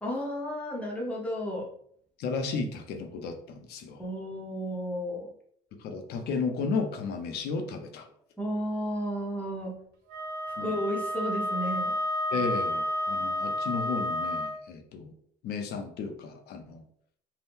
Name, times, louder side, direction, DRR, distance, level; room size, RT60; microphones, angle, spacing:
voice 1, 0.0-1.7 4.0-5.3 8.4-9.8 10.6-11.9, equal, 10° left, -3 dB, 0.9 m, -33 dB
voice 2, 2.2-4.0 5.8-8.1 10.6-10.7 12.3-15.1 15.4-16.8, left 4 dB, 75° left, 5 dB, 0.6 m, -33 dB
Wind instrument woodwind instrument, 10.1-14.6, left 1 dB, 85° right, 0.8 m, -30 dB
2.7 x 2.2 x 3.5 m, 0.65 s
cardioid pair, 110°, 17 cm